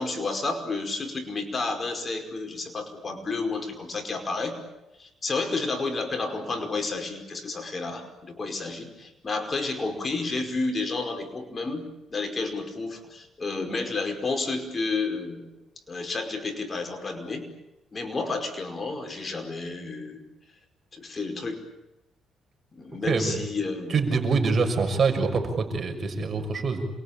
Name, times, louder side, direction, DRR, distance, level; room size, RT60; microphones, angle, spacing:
voice 1, 0.0-4.6 5.0-15.5 15.9-17.5 17.9-20.2 20.9-21.6 22.7-24.0, left 3 dB, 35° left, 6 dB, 5.2 m, -31 dB
voice 2, 23.0-23.4 23.9-26.9, right 4 dB, 45° right, 5 dB, 6.3 m, -25 dB
28.0 x 23.0 x 8.8 m, 0.96 s
cardioid pair, 90°, 0 cm